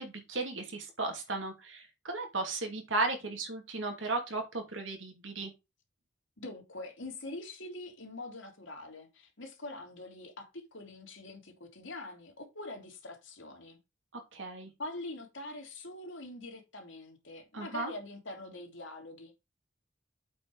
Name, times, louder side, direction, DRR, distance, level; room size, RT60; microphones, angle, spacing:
voice 1, 0.0-5.5 14.1-14.7 17.5-17.9, right 3 dB, 90° right, 2.6 m, -35 dB
voice 2, 6.4-13.8 14.8-19.4, left 2 dB, 90° left, 2.8 m, -44 dB
8.3 x 4.7 x 4.8 m
head